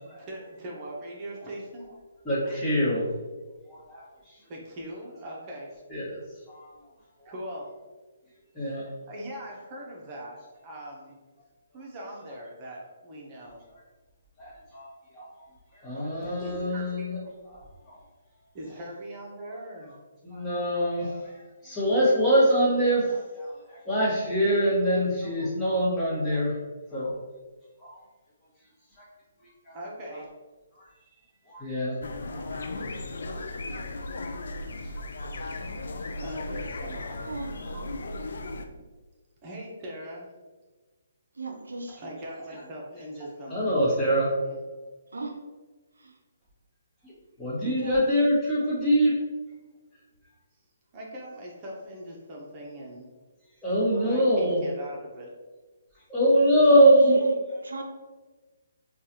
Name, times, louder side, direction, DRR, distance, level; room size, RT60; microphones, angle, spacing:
voice 1, 0.3-1.9 4.5-5.8 7.2-7.7 8.7-8.8 9.1-11.2 11.7-13.6 16.4-17.1 18.5-19.9 23.6-23.7 23.9-24.1 29.7-30.3 36.2-37.3 39.4-40.3 41.9-44.2 44.4-44.6 50.9-53.1 54.0-55.3, right 1 dB, 30° right, -2 dB, 0.9 m, -41 dB
voice 2, 2.2-3.1 3.7-4.4 5.9-6.2 6.5-6.7 7.2-7.3 8.5-8.8 14.4-14.9 15.1-15.3 15.7-17.2 17.5-18.0 20.2-26.6 26.9-27.1 27.8-28.0 29.0-29.1 29.4-29.8 30.1-30.2 31.5-32.0 32.3-32.6 33.2-33.4 34.9-35.4 37.1-37.2 37.7-37.9 43.5-44.3 47.0-49.2 53.6-54.6 56.1-57.2, equal, 10° left, -9 dB, 1.5 m, -24 dB
sound 1, 32.0-38.6, left 2 dB, 70° left, 0.4 m, -36 dB
voice 3, 37.2-37.5 41.4-42.0 45.1-45.4 46.0-46.1 47.6-48.3 53.8-54.0 56.7-57.2 57.6-57.8, right 3 dB, 85° right, 3 dB, 0.5 m, -36 dB
4.6 x 2.4 x 2.9 m, 1.3 s
hypercardioid pair, 145°, 0 cm